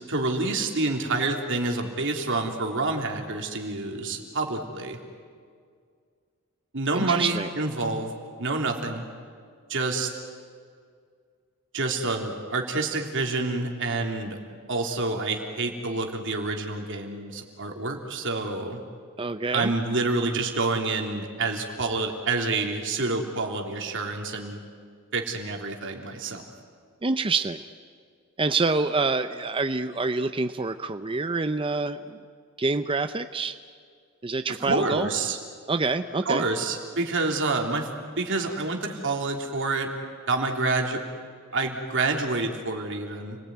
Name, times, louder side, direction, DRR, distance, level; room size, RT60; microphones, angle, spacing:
voice 1, 0.1-5.0 6.7-8.1 8.4-9.1 9.7-10.1 11.7-14.4 14.7-18.8 19.5-24.6 25.1-26.4 34.5-35.4 36.2-37.9 38.1-39.9 40.3-41.0 41.5-43.4, right 3 dB, 60° right, 2 dB, 3.3 m, -28 dB
voice 2, 6.9-7.5 19.2-19.7 27.0-27.6 28.4-32.2 32.6-33.6 34.2-35.1 35.7-36.4, right 3 dB, 25° right, 9 dB, 0.6 m, -26 dB
30.0 x 20.5 x 9.5 m, 2.1 s
head